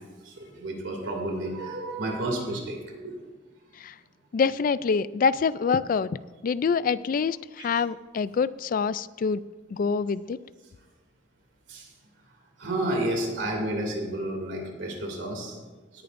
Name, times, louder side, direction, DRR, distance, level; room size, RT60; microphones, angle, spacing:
voice 1, 0.2-2.8 3.0-3.1 11.7-11.9 12.6-15.6, right 1 dB, 85° right, 1 dB, 2.5 m, -31 dB
voice 2, 4.3-9.4 9.7-10.4, left 5 dB, 50° left, 17 dB, 0.3 m, -26 dB
18.0 x 10.5 x 2.6 m, 1.3 s
head